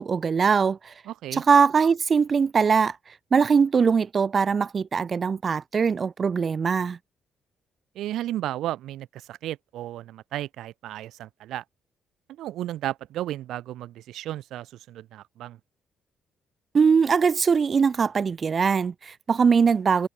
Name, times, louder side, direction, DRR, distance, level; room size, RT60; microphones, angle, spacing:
voice 1, 0.0-0.9 1.3-3.0 3.3-7.0 16.7-20.1, right 6 dB, 40° right, 1.7 m, -21 dB
voice 2, 1.0-1.4 7.9-11.6 12.4-15.6, right 13 dB, 85° right, 1.4 m, -34 dB
cardioid pair, 90°, 0 cm